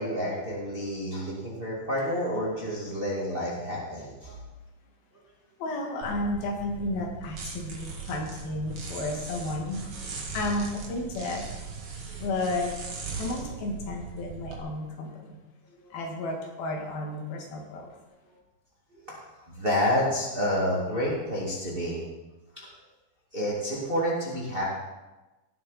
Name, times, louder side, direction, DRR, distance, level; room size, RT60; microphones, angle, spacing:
voice 1, 0.0-4.4 12.1-12.2 15.8-15.9 18.9-19.2 19.5-22.0 22.5-22.7 23.3-24.6, equal, 20° right, -5 dB, 1.9 m, -29 dB
voice 2, 5.6-9.8 10.3-11.5 12.2-12.7 13.2-15.4 15.9-17.9, left 2 dB, 85° left, 1 dB, 3.7 m, -32 dB
sound 1, 6.0-14.6, right 5 dB, 45° right, 2.8 m, -39 dB
18.0 x 7.9 x 4.2 m, 1.1 s
omnidirectional pair, 4.2 m